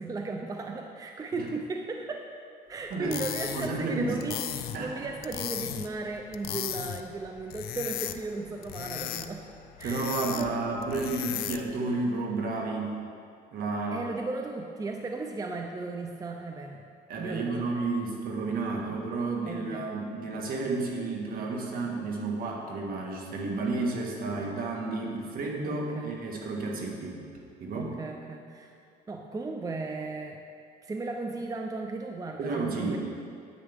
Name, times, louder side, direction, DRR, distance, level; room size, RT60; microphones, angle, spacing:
voice 1, 0.0-2.3 2.7-4.4 4.8-9.4 9.8-10.6 13.9-16.8 17.2-17.7 18.9-19.0 19.4-19.9 25.6-26.2 27.7-28.8 29.1-30.4 30.8-33.0, right 3 dB, 20° right, 3 dB, 0.5 m, -36 dB
sound 1, 2.9-11.8, left 11 dB, 65° left, 0.5 m, -37 dB
voice 2, 3.5-4.2 4.7-5.0 9.8-13.0 13.5-14.1 17.1-27.2 27.6-28.0 32.4-33.0, right 3 dB, 60° right, -1 dB, 1.6 m, -31 dB
9.8 x 8.5 x 3.6 m, 2.4 s
cardioid pair, 110°, 17 cm